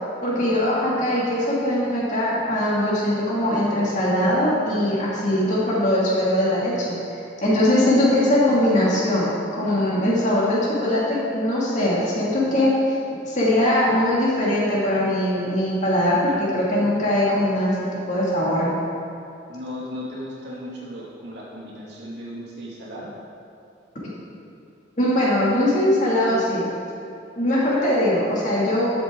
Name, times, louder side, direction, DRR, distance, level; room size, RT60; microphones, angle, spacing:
voice 1, 0.2-13.0 13.3-18.7 25.0-26.7 27.4-28.9, left 1 dB, 40° left, -7 dB, 2.5 m, -21 dB
voice 2, 19.5-23.1, left 1 dB, 65° right, -6 dB, 2.5 m, -36 dB
12.0 x 8.0 x 3.8 m, 2.6 s
head